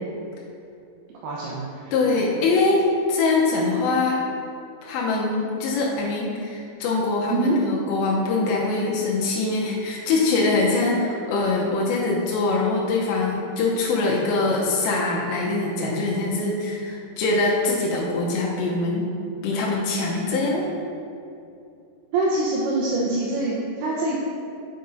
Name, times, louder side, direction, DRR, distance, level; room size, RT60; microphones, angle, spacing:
voice 1, 1.2-1.8 7.3-7.6 22.1-24.2, right 2 dB, 75° right, -5 dB, 2.6 m, -24 dB
voice 2, 1.9-2.8 3.1-4.2 4.8-19.1 19.4-20.7, left 3 dB, 85° left, -4 dB, 3.1 m, -23 dB
7.9 x 5.3 x 5.2 m, 2.6 s
omnidirectional pair, 5.1 m